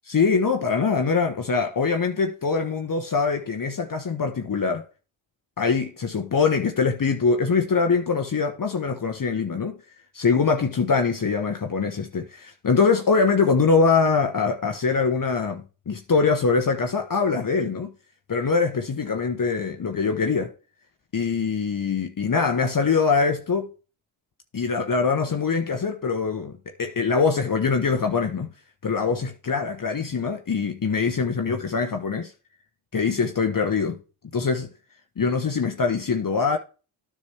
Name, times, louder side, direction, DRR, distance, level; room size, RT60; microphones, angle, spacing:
voice 1, 0.1-4.9 5.6-9.8 10.1-17.9 18.3-20.5 21.1-23.7 24.5-28.5 28.8-32.3 32.9-34.0 34.3-34.7 35.2-36.6, left 5 dB, 40° left, 1.1 m, -23 dB
9.7 x 6.1 x 3.3 m
supercardioid pair, 45°, 50 cm